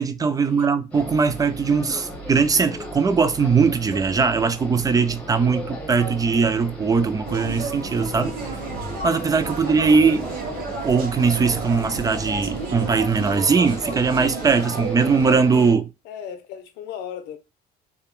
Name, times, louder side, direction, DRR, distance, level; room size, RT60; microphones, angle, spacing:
voice 1, 0.0-8.3 9.0-10.2 10.8-15.9, right 5 dB, 20° right, 0.4 m, -20 dB
sound 1, 0.9-15.7, equal, 10° left, 1.1 m, -36 dB
sound 2, 7.3-15.4, right 3 dB, 60° right, 1.0 m, -32 dB
voice 2, 16.0-17.4, left 9 dB, 90° left, 0.7 m, -36 dB
3.5 x 2.2 x 2.3 m
cardioid pair, 110°, 17 cm